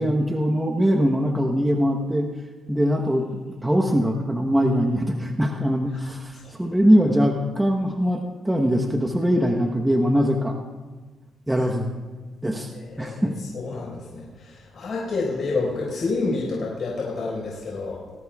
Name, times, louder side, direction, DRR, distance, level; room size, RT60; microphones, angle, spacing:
voice 1, 0.0-2.3 2.7-3.3 3.6-10.6 11.5-11.9 12.4-12.7 13.0-13.3, equal, 10° right, 1 dB, 1.0 m, -22 dB
voice 2, 12.7-13.3 13.5-18.0, left 3 dB, 50° left, -4 dB, 4.7 m, -29 dB
20.5 x 17.0 x 2.4 m, 1.4 s
cardioid pair, 90°, 0 cm